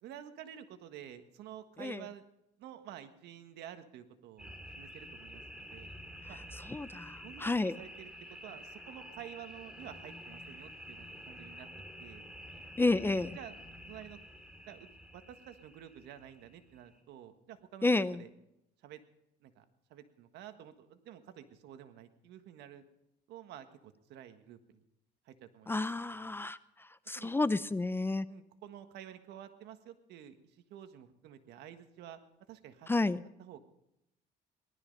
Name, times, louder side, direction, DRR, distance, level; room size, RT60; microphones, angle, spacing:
voice 1, 0.0-2.2 2.6-5.9 6.3-6.4 7.2-8.1 8.4-11.7 12.0-12.3 13.3-13.5 13.9-14.2 14.6-18.3 18.8-19.0 19.4-19.6 19.9-22.8 23.3-24.8 25.2-26.3 27.1-27.3 28.3-32.2 32.5-32.9 33.4-33.6, right 10 dB, 80° right, 9 dB, 1.5 m, -50 dB
sound 1, 4.4-17.0, equal, 5° right, 3.2 m, -49 dB
voice 2, 6.7-7.7 12.8-13.4 17.8-18.2 25.7-26.6 27.1-28.3 32.9-33.2, left 2 dB, 15° left, 16 dB, 0.5 m, -30 dB
19.0 x 12.5 x 5.3 m, 0.84 s
cardioid pair, 110°, 17 cm